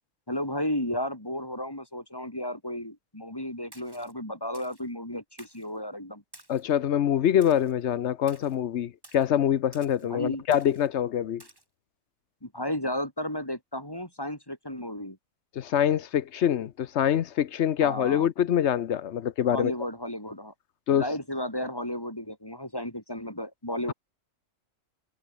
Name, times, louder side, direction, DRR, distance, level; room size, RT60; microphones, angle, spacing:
voice 1, 0.3-6.2 10.1-10.4 12.4-15.2 17.8-18.3 19.5-20.5 20.9-23.9, left 1 dB, 15° left, 3.3 m, -33 dB
Splash splatter, 3.7-4.1 4.5-4.9 5.4-5.7 6.3-6.7 7.4-7.7 8.3-8.6 9.0-9.3 9.7-10.1 10.5-10.9 11.4-11.6, right 1 dB, 15° right, 2.9 m, -53 dB
voice 2, 6.5-11.4 15.6-19.7 20.9-21.1, left 10 dB, 60° left, 1.0 m, -25 dB
omnidirectional pair, 1.4 m